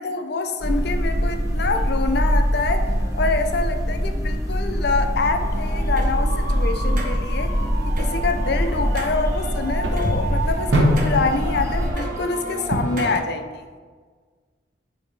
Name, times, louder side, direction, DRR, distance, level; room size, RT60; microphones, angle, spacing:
voice 1, 0.0-2.9 3.2-7.5 8.0-13.6, left 3 dB, 55° left, 6 dB, 0.5 m, -26 dB
sound 1, 0.6-11.9, equal, 15° right, 0.8 m, -23 dB
sound 2, 1.0-13.2, equal, 85° right, 1.1 m, -29 dB
sound 3, 5.4-13.2, right 2 dB, 45° right, 1.0 m, -32 dB
7.7 x 2.9 x 4.7 m, 1.5 s
head